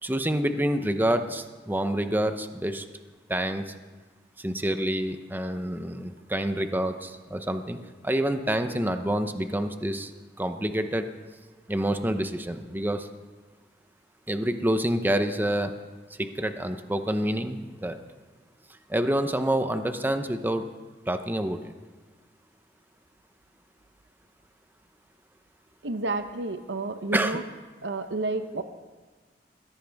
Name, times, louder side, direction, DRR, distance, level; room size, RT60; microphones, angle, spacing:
voice 1, 0.0-2.8 3.3-3.7 4.4-7.8 8.0-10.1 10.4-11.1 11.7-13.1 14.3-15.7 16.2-18.0 18.9-20.6 21.1-21.6 27.1-27.4, right 1 dB, 10° right, 8 dB, 0.8 m, -27 dB
voice 2, 25.8-27.4 27.8-28.6, right 3 dB, 85° right, 8 dB, 0.9 m, -30 dB
21.5 x 16.0 x 3.5 m, 1.4 s
head